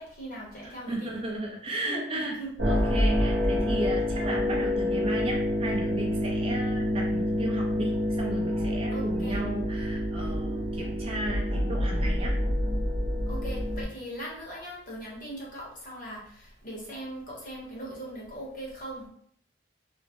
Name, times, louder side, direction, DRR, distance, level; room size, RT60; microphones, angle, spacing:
voice 1, 0.0-1.1 1.8-2.8 8.9-9.4 13.3-19.1, right 1 dB, 45° left, -4 dB, 0.9 m, -40 dB
voice 2, 0.6-2.4 2.6-12.3, right 1 dB, 30° right, -1 dB, 0.5 m, -35 dB
sound 1, 2.6-13.8, left 1 dB, 85° right, 0.8 m, -27 dB
2.4 x 2.0 x 3.4 m, 0.64 s
head